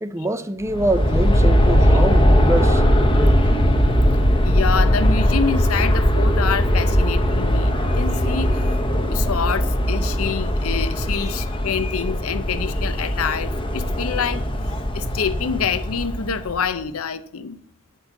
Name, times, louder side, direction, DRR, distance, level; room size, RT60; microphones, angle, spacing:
voice 1, 0.0-2.8 3.1-3.4, right 1 dB, 15° right, 0.5 m, -24 dB
Aircraft, 0.6-16.7, equal, 25° left, 0.9 m, -19 dB
voice 2, 4.4-17.6, left 6 dB, 80° left, 0.7 m, -27 dB
10.5 x 6.2 x 6.8 m
head